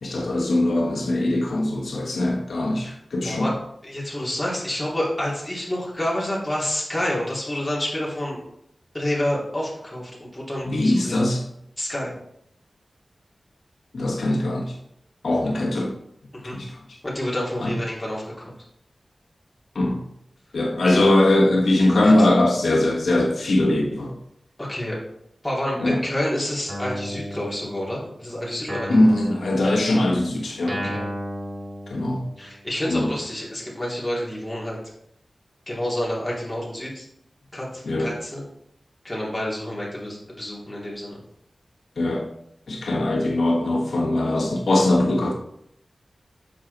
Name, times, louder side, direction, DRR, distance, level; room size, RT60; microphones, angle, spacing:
voice 1, 0.0-3.5 10.6-11.5 13.9-14.7 15.2-15.9 16.4-16.7 17.6-17.8 19.7-20.0 20.5-24.1 25.8-26.0 28.9-30.9 31.9-32.2 32.9-33.1 37.8-38.1 42.0-42.3 42.7-45.3, left 1 dB, 80° left, 0 dB, 1.3 m, -21 dB
voice 2, 3.8-8.4 8.9-11.3 11.8-12.1 16.3-16.6 17.0-18.5 22.0-22.3 24.6-25.0 25.4-29.1 30.8-31.1 32.4-34.8 35.7-37.0 37.5-38.4 39.0-41.2, left 1 dB, 15° left, -5 dB, 2.5 m, -28 dB
Guitar, 26.7-28.2 28.7-32.6, equal, 65° right, 2.0 m, -34 dB
6.6 x 4.5 x 4.0 m, 0.76 s
cardioid pair, 50°, 0 cm